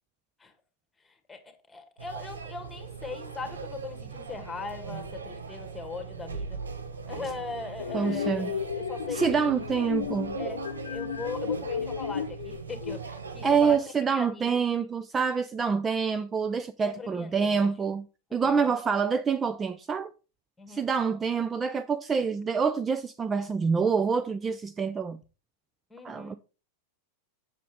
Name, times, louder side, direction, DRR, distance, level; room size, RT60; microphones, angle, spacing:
voice 1, 1.0-6.6 7.0-9.5 10.4-14.6 16.8-17.7 18.3-18.7 20.6-20.8 25.9-26.4, left 4 dB, 10° left, 1.8 m, -40 dB
sound 1, 2.0-13.8, right 5 dB, 80° right, 1.0 m, -39 dB
sound 2, 7.8-13.0, left 7 dB, 75° left, 0.4 m, -34 dB
voice 2, 7.9-8.5 9.1-10.4 13.4-18.1 18.3-20.1 20.7-25.2 26.0-26.4, right 5 dB, 20° right, 0.4 m, -26 dB
7.5 x 6.6 x 3.5 m
figure-of-eight pair, 95°, 0 cm